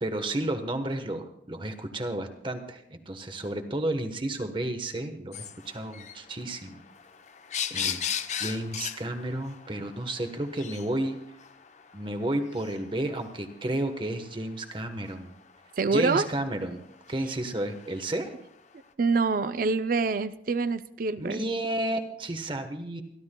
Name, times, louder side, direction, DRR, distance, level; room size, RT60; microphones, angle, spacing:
voice 1, 0.0-6.8 7.7-8.0 8.4-11.2 11.9-15.3 15.9-16.8 17.1-18.4 21.2-23.0, right 1 dB, 25° right, 6 dB, 1.1 m, -32 dB
sound 1, 5.3-18.7, left 8 dB, 40° left, 0.7 m, -39 dB
voice 2, 15.8-16.3 19.0-21.4, right 4 dB, 50° right, 12 dB, 0.4 m, -25 dB
28.5 x 12.0 x 2.2 m, 0.77 s
head